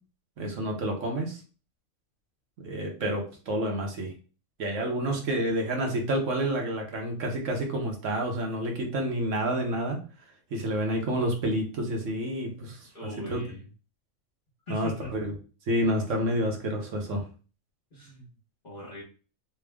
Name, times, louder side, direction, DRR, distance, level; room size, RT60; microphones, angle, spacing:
voice 1, 0.4-1.4 2.6-4.1 4.6-10.0 10.5-12.9 13.3-13.4 14.7-15.3 15.7-17.2, right 1 dB, 70° right, 1 dB, 1.3 m, -29 dB
voice 2, 12.9-13.7 14.7-15.1 17.9-18.3 18.6-19.0, left 1 dB, 40° left, -6 dB, 1.3 m, -41 dB
3.4 x 2.3 x 3.4 m, 0.36 s
omnidirectional pair, 1.4 m